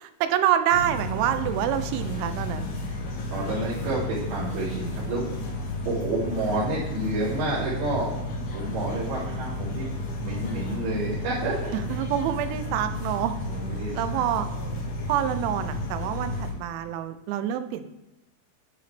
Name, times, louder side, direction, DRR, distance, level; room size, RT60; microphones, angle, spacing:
voice 1, 0.0-2.7 11.7-13.4 14.0-14.5 15.1-17.9, right 10 dB, 90° right, 10 dB, 3.0 m, -26 dB
sound 1, 0.7-16.5, left 1 dB, 80° left, 4.2 m, -32 dB
voice 2, 3.3-5.6 5.9-8.1 8.5-11.7 13.5-14.0, right 2 dB, 75° right, -12 dB, 4.7 m, -29 dB
10.5 x 5.0 x 3.3 m, 0.98 s
omnidirectional pair, 5.3 m